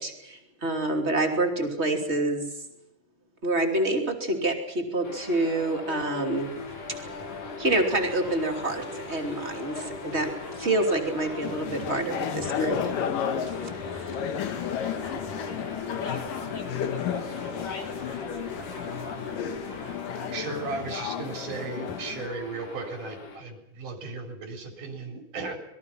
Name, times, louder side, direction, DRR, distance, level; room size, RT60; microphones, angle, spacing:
voice 1, 0.0-2.6 3.4-6.5 7.6-12.8 13.5-14.2, right 2 dB, 20° right, 3 dB, 3.0 m, -27 dB
sound 1, 5.0-23.4, left 4 dB, 70° left, 5.0 m, -41 dB
sound 2, 6.3-20.0, left 2 dB, 40° left, 4.8 m, -42 dB
sound 3, 11.4-22.3, left 8 dB, 90° left, 3.2 m, -33 dB
voice 2, 16.0-20.4, left 4 dB, 55° left, 2 dB, 4.3 m, -41 dB
voice 3, 20.3-25.6, right 3 dB, 75° right, 4 dB, 5.6 m, -36 dB
27.0 x 21.5 x 5.8 m, 0.88 s
omnidirectional pair, 3.7 m